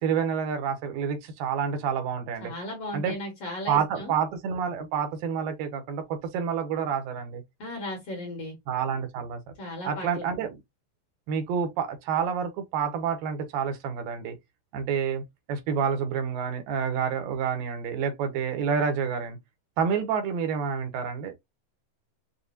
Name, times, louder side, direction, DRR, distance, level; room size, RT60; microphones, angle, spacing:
voice 1, 0.0-2.5 2.9-3.2 3.7-7.4 8.7-9.4 9.8-10.6 11.3-14.4 14.7-15.2 15.5-19.4 19.8-21.3, right 7 dB, 80° right, 2.5 m, -28 dB
voice 2, 2.4-4.1 7.6-8.6 9.6-10.2, left 1 dB, 55° left, 2.1 m, -36 dB
6.8 x 2.3 x 2.5 m
omnidirectional pair, 4.0 m